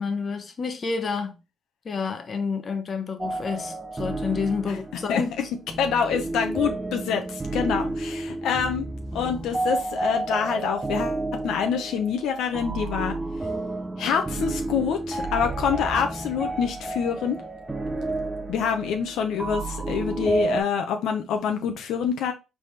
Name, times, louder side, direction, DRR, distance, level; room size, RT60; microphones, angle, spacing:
voice 1, 0.0-1.4 1.8-5.3 8.3-8.4, left 5 dB, 45° left, 0.8 m, -29 dB
sound 1, 3.2-20.6, right 2 dB, 15° right, 0.6 m, -31 dB
voice 2, 5.1-5.4 5.8-8.9 9.1-13.2 14.0-17.4 18.5-22.3, left 7 dB, 80° left, 0.6 m, -26 dB
4.1 x 3.4 x 3.2 m
cardioid pair, 90°, 0 cm